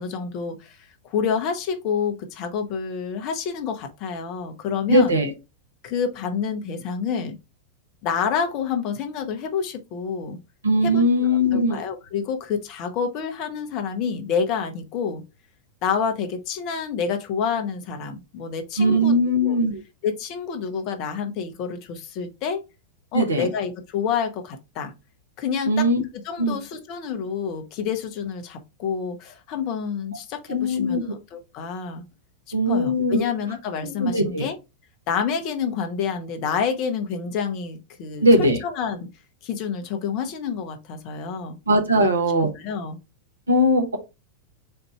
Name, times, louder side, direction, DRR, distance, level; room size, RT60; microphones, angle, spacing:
voice 1, 0.0-5.2 5.8-7.4 8.0-10.4 10.8-15.2 15.8-19.2 19.4-19.6 20.0-22.6 23.1-24.9 25.4-25.9 26.2-32.0 32.7-34.6 35.1-39.1 39.4-41.6 42.0-42.1 42.5-43.0, left 6 dB, 40° left, 7 dB, 0.9 m, -28 dB
voice 2, 4.9-5.3 10.6-11.8 18.8-19.8 23.1-23.5 25.7-26.0 26.4-26.6 30.5-31.0 32.5-33.2 33.8-34.5 38.2-38.6 41.7-42.5 43.5-44.0, equal, 75° right, 5 dB, 1.1 m, -20 dB
4.5 x 2.6 x 4.2 m, 0.25 s
figure-of-eight pair, 90°, 0 cm